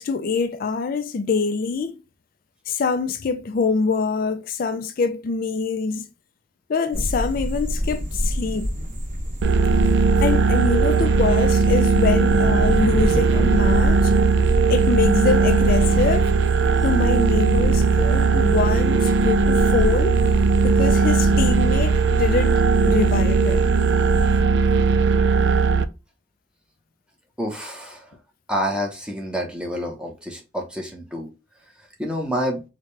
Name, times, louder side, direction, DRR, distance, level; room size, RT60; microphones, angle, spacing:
voice 1, 0.0-2.0 2.7-6.1 6.7-8.7 10.2-14.1 14.7-16.3 16.8-20.2 20.6-23.7, left 5 dB, 50° left, 0.3 m, -24 dB
sound 1, 6.9-24.4, equal, 50° right, 1.4 m, -28 dB
sound 2, 9.4-25.8, right 4 dB, 90° right, 0.4 m, -18 dB
voice 2, 27.4-28.1 28.5-31.3 31.8-32.6, equal, 5° right, 0.8 m, -28 dB
4.8 x 2.2 x 3.2 m
head